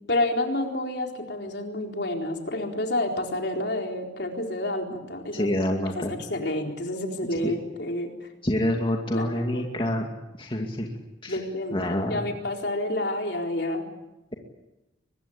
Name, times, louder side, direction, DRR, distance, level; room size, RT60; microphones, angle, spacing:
voice 1, 0.1-5.5 5.9-8.3 9.1-9.3 9.5-9.6 11.3-13.9, left 1 dB, 60° left, 2 dB, 4.2 m, -29 dB
voice 2, 5.3-6.2 7.4-7.5 8.4-10.1 10.4-10.9 11.2-11.4 11.7-12.2, left 1 dB, 25° left, 1 dB, 2.4 m, -27 dB
24.0 x 21.5 x 8.8 m, 0.96 s
head